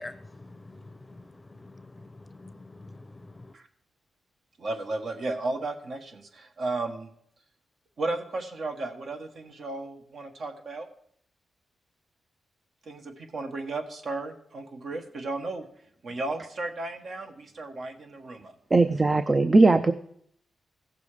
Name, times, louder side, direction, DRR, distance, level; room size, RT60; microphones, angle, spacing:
voice 1, 0.0-3.5, left 2 dB, 20° left, 11 dB, 0.7 m, -46 dB
voice 2, 4.6-7.1 8.0-10.9 12.8-15.7 16.0-18.5, right 2 dB, 60° right, 5 dB, 1.5 m, -34 dB
voice 3, 18.7-19.9, right 3 dB, 30° right, 10 dB, 0.5 m, -19 dB
15.5 x 6.8 x 5.0 m, 0.67 s
cardioid pair, 85°, 0 cm